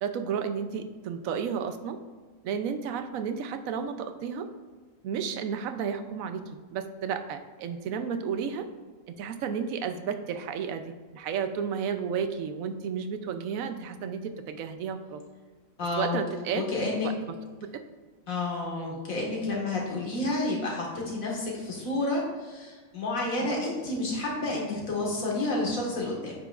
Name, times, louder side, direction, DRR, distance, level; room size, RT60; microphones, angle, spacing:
voice 1, 0.0-2.0 2.4-4.5 5.0-8.7 9.2-15.2 16.0-16.6 17.0-17.1 18.8-19.0, right 7 dB, 85° right, 8 dB, 1.0 m, -32 dB
voice 2, 15.8-16.2 16.6-17.1 18.3-26.3, left 2 dB, 80° left, -2 dB, 2.1 m, -30 dB
8.6 x 5.7 x 2.4 m, 1.5 s
omnidirectional pair, 1.4 m